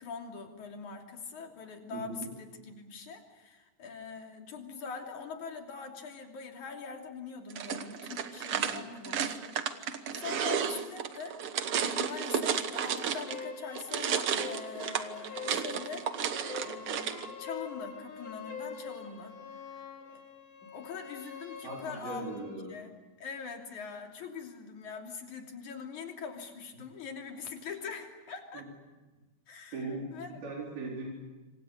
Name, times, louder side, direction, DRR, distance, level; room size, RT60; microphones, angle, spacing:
voice 1, 0.0-11.4 11.8-19.4 19.7-19.8 20.1-20.2 20.6-22.9 23.2-28.7 29.5-30.4, left 5 dB, 55° left, 3 dB, 4.2 m, -43 dB
voice 2, 1.9-2.3 8.6-8.8 21.6-22.7 28.5-28.7 29.7-31.2, right 2 dB, 85° right, -2 dB, 6.1 m, -39 dB
sound 1, 7.5-13.5 13.7-17.3, right 8 dB, 60° right, 1.6 m, -33 dB
sound 2, 12.6-22.6, left 6 dB, 80° left, 5.1 m, -45 dB
27.0 x 26.0 x 8.2 m, 1.2 s
omnidirectional pair, 4.2 m